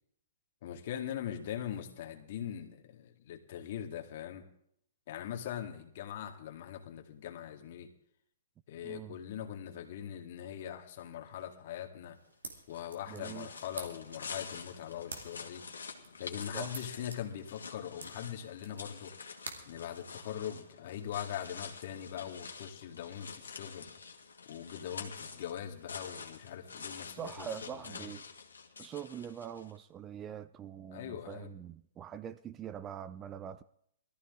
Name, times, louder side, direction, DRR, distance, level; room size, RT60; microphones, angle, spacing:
voice 1, 0.6-4.4 5.1-7.9 8.7-12.2 12.7-15.6 16.2-19.1 19.7-23.9 24.5-28.1 30.9-31.5, left 10 dB, 50° left, 2.1 m, -41 dB
voice 2, 8.8-9.2 13.1-13.5 16.5-16.7 27.1-28.2 28.8-33.6, right 9 dB, 25° right, 0.5 m, -43 dB
sound 1, 12.1-20.7, right 3 dB, 80° right, 2.3 m, -51 dB
sound 2, 12.6-29.8, left 5 dB, 80° left, 2.0 m, -47 dB
19.0 x 14.0 x 3.8 m
hypercardioid pair, 120°, 0 cm